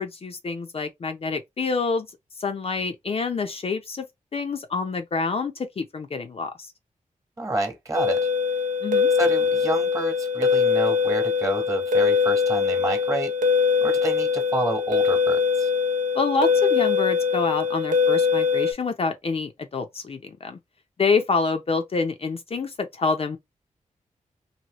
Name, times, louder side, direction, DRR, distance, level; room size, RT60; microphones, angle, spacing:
voice 1, 0.0-2.1 2.4-4.1 4.3-6.5 8.8-9.1 16.1-20.6 21.0-23.4, left 4 dB, 45° left, 0.5 m, -27 dB
voice 2, 7.4-8.3 9.1-13.4 13.8-15.7, right 2 dB, 25° right, 1.2 m, -29 dB
sound 1, 7.9-18.7, left 5 dB, 75° right, 0.7 m, -22 dB
2.8 x 2.7 x 2.9 m
cardioid pair, 80°, 14 cm